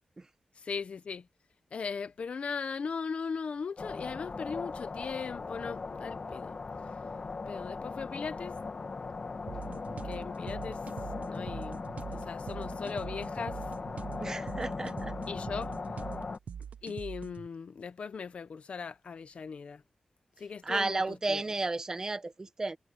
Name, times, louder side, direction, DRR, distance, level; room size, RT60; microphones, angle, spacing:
voice 1, 0.6-1.3 1.7-6.6 7.5-8.6 10.0-10.8 11.3-11.8 12.1-13.6 15.3-15.8 16.8-19.8 20.4-21.0 21.3-21.4, left 5 dB, 60° left, 1.0 m, -38 dB
sound 1, 3.8-16.4, left 4 dB, 40° left, 1.7 m, -39 dB
sound 2, 9.5-17.5, right 7 dB, 75° right, 0.7 m, -43 dB
voice 2, 14.2-15.1 20.6-22.8, right 3 dB, 25° right, 1.3 m, -33 dB
wide cardioid pair, 160°, 2 cm